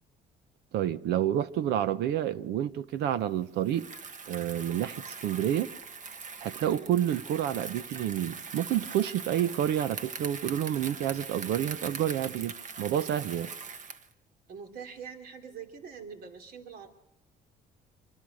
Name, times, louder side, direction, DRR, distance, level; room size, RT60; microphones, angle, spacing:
voice 1, 0.7-3.9 4.3-5.7 6.4-13.5, right 11 dB, 80° right, 0.9 m, -29 dB
Bicycle, 3.6-14.1, right 5 dB, 50° right, 1.5 m, -42 dB
voice 2, 14.5-16.9, right 6 dB, 65° right, 3.1 m, -44 dB
26.5 x 24.5 x 6.4 m
cardioid pair, 110°, 17 cm